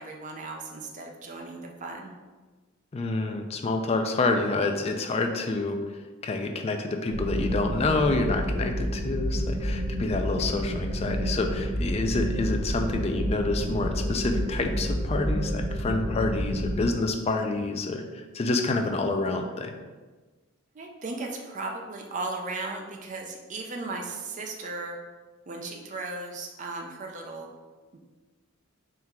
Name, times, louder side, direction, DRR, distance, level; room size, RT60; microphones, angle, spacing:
voice 1, 0.0-2.2 20.7-25.0 25.5-27.5, right 3 dB, 35° right, 2 dB, 0.5 m, -36 dB
voice 2, 2.9-5.8 6.2-19.7, left 3 dB, 30° left, 5 dB, 0.4 m, -28 dB
sound 1, 7.1-16.8, equal, 55° right, 0.8 m, -29 dB
3.7 x 2.8 x 4.4 m, 1.3 s
head